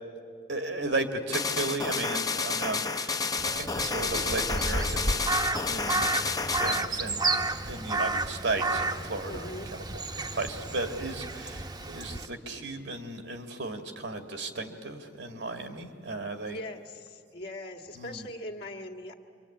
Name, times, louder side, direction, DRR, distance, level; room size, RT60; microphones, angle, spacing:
voice 1, 0.5-5.4 5.7-7.3 7.7-9.5 9.9-16.6 17.9-18.3, right 2 dB, 80° right, 6 dB, 2.2 m, -35 dB
sound 1, 1.3-6.9, left 4 dB, 20° left, 0.7 m, -30 dB
Crow, 3.4-12.3, right 2 dB, 25° right, 0.9 m, -31 dB
voice 2, 9.3-9.7 16.4-19.1, left 1 dB, 60° left, 0 dB, 1.9 m, -40 dB
26.5 x 24.5 x 8.7 m, 2.4 s
head